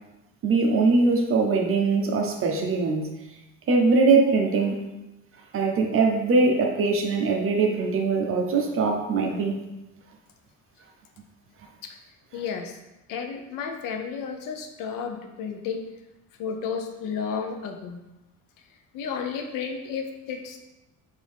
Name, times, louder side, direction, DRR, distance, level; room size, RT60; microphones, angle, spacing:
voice 1, 0.4-3.1 3.7-4.8 5.5-9.7, right 4 dB, 40° right, 2 dB, 0.7 m, -22 dB
voice 2, 12.3-12.8 13.1-15.8 16.4-18.0 18.7-20.6, left 6 dB, 80° left, 4 dB, 0.7 m, -32 dB
5.2 x 2.7 x 3.4 m, 0.99 s
cardioid pair, 125°, 32 cm